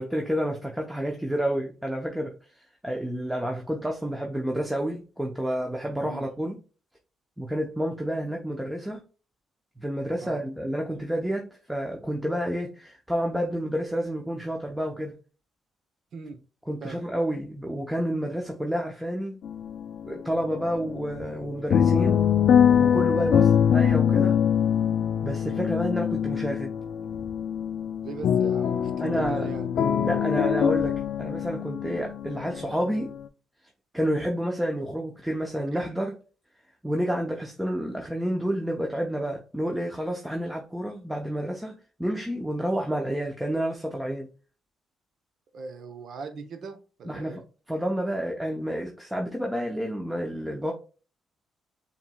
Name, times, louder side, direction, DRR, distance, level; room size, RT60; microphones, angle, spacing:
voice 1, 0.0-2.4 2.8-6.6 7.4-9.0 9.8-15.2 16.7-19.4 20.0-22.2 22.8-24.4 25.2-26.7 29.0-29.5 30.0-33.1 33.9-36.2 36.8-41.7 42.0-44.3 47.1-47.4 47.7-50.7, equal, 5° right, 0.7 m, -29 dB
sound 1, 19.4-20.2 20.5-33.2, left 8 dB, 65° left, 0.4 m, -24 dB
voice 2, 28.0-29.7 45.5-47.4, right 5 dB, 65° right, 0.8 m, -40 dB
7.0 x 3.0 x 2.3 m
cardioid pair, 90°, 0 cm